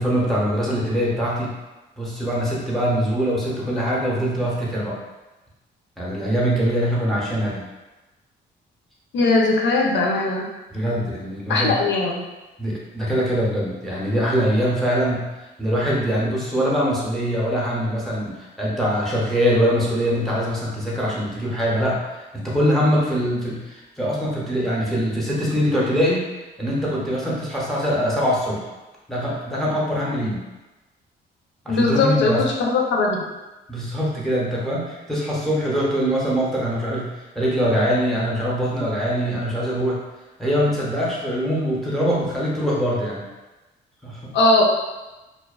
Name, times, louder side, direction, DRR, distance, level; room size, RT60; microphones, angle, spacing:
voice 1, 0.0-1.5 2.0-5.0 6.0-7.6 10.7-11.7 12.6-26.3 26.6-28.6 29.1-30.4 31.6-32.4 33.7-40.0 40.4-43.2 44.0-44.3, equal, ahead, -5 dB, 0.7 m, -23 dB
voice 2, 9.1-10.5 11.5-12.2 31.7-33.3 44.3-44.6, left 2 dB, 65° left, -1 dB, 0.5 m, -19 dB
2.5 x 2.2 x 2.3 m, 1.1 s
cardioid pair, 90°, 20 cm